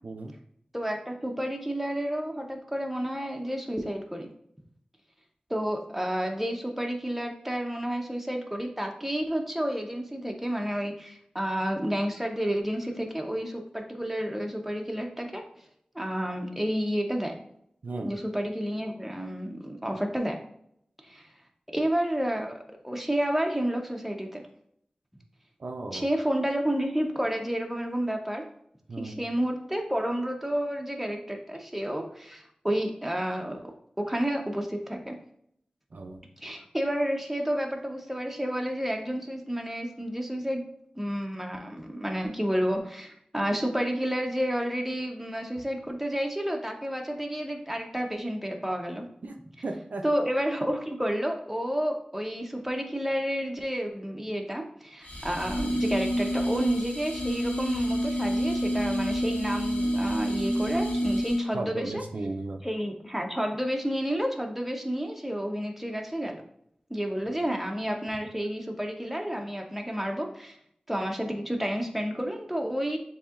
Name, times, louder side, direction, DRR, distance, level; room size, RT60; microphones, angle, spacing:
voice 1, 0.0-0.3 17.8-18.1 25.6-26.1 28.9-29.2 35.9-36.2 49.2-49.4 49.6-50.0 61.5-62.6, right 2 dB, 75° right, 4 dB, 0.5 m, -35 dB
voice 2, 0.7-4.3 5.5-15.4 15.9-17.4 18.0-20.4 21.0-21.3 21.7-24.4 25.9-28.4 29.0-33.6 34.0-35.2 36.4-40.6 41.0-49.0 50.0-62.0 62.6-66.4 66.9-70.6 70.9-73.0, equal, 5° right, 2 dB, 0.7 m, -30 dB
sound 1, 55.1-61.6, equal, 70° left, 0.9 m, -28 dB
7.0 x 2.8 x 2.5 m, 0.71 s
wide cardioid pair, 65°, 3 cm